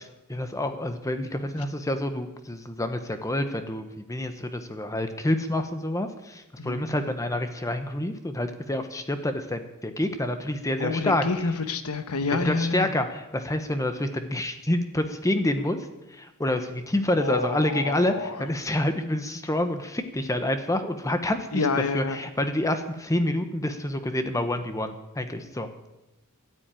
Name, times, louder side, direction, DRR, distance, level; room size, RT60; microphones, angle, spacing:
voice 1, 0.3-11.2 12.3-21.6 21.9-25.7, left 1 dB, 15° left, 8 dB, 0.9 m, -28 dB
voice 2, 6.6-7.2 10.8-12.9 17.2-18.5 21.5-22.2, left 3 dB, 85° left, 10 dB, 1.1 m, -28 dB
13.0 x 9.3 x 9.0 m, 1.0 s
head